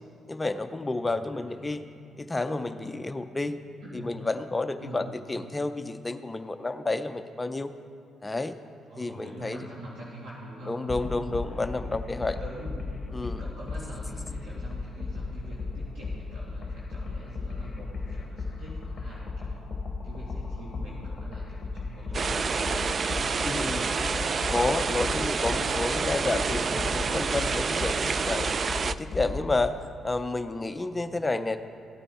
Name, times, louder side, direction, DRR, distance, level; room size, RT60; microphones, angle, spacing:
voice 1, 0.3-1.8 2.2-3.6 4.0-7.7 8.2-8.5 9.0-9.6 10.7-12.4 13.1-13.4 23.4-23.9 24.5-28.5 28.9-29.7 30.0-31.6, left 2 dB, 20° left, 9 dB, 0.5 m, -30 dB
voice 2, 1.0-1.9 2.8-3.1 3.8-4.1 4.8-5.2 8.9-11.9 12.2-12.9 13.2-19.6 20.0-23.9 26.5-27.2 30.9-31.2, right 1 dB, 80° right, -7 dB, 2.3 m, -45 dB
sound 1, 10.9-29.7, left 3 dB, 35° left, 1.0 m, -36 dB
sound 2, 22.1-28.9, right 5 dB, 45° right, 0.3 m, -28 dB
14.5 x 9.0 x 4.2 m, 2.6 s
cardioid pair, 90°, 0 cm